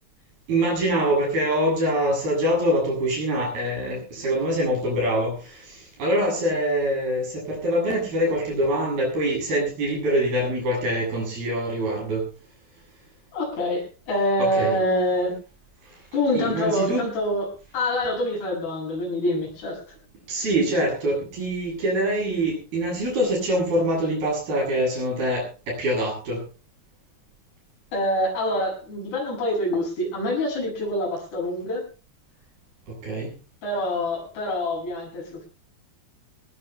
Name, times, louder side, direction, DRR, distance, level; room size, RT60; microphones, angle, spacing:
voice 1, 0.5-12.3 14.4-14.8 16.3-17.1 20.3-26.4 32.9-33.3, right 1 dB, 55° right, 0 dB, 9.4 m, -24 dB
voice 2, 13.3-15.4 16.1-19.8 27.9-31.9 33.6-35.5, left 1 dB, 65° left, -3 dB, 8.7 m, -26 dB
23.0 x 19.5 x 2.2 m, 0.34 s
omnidirectional pair, 5.1 m